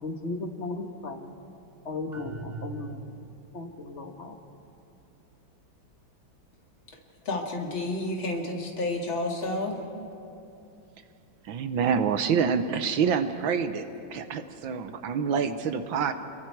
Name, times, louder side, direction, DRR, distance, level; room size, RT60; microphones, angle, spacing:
voice 1, 0.0-1.3 1.8-3.1 3.5-4.4, left 3 dB, 40° left, 5 dB, 1.5 m, -36 dB
sound 1, 2.1-3.6, right 4 dB, 45° right, 0.4 m, -41 dB
voice 2, 7.3-9.8, left 2 dB, 75° left, 1 dB, 3.0 m, -30 dB
voice 3, 11.4-16.1, right 6 dB, 75° right, 9 dB, 1.7 m, -27 dB
29.5 x 22.0 x 4.7 m, 2.7 s
omnidirectional pair, 2.2 m